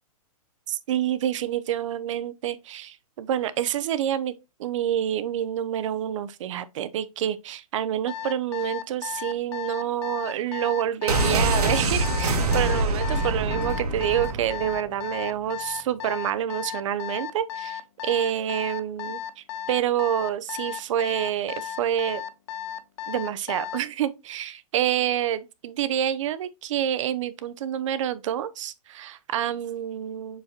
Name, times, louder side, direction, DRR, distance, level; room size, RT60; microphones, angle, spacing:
voice 1, 0.7-4.3 4.6-22.2 23.1-30.4, right 11 dB, 55° right, 0.8 m, -28 dB
Alarm, 8.1-23.9, left 10 dB, 45° left, 0.7 m, -34 dB
sound 1, 11.1-14.9 15.1-15.2, right 2 dB, 85° right, 2.0 m, -25 dB
7.0 x 5.1 x 2.9 m
hypercardioid pair, 150°, 19 cm